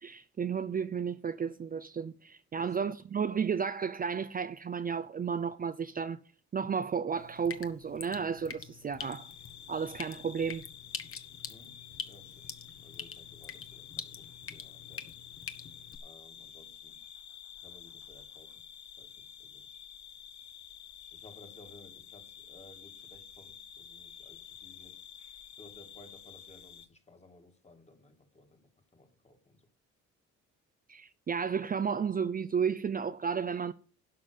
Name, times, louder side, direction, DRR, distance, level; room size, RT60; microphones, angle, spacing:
voice 1, 0.0-6.2 6.5-9.3 9.7-10.7 30.9-33.7, right 6 dB, 30° right, 0.5 m, -33 dB
Drip, 7.2-16.0, left 6 dB, 45° left, 1.3 m, -45 dB
sound 1, 9.0-26.9, left 9 dB, 70° left, 1.0 m, -50 dB
voice 2, 11.5-12.6 12.8-15.2 16.0-17.0 17.6-18.7 19.0-19.7 21.1-25.0 25.6-29.7, left 2 dB, 20° left, 1.9 m, -58 dB
11.5 x 5.6 x 6.6 m
cardioid pair, 90°, 30 cm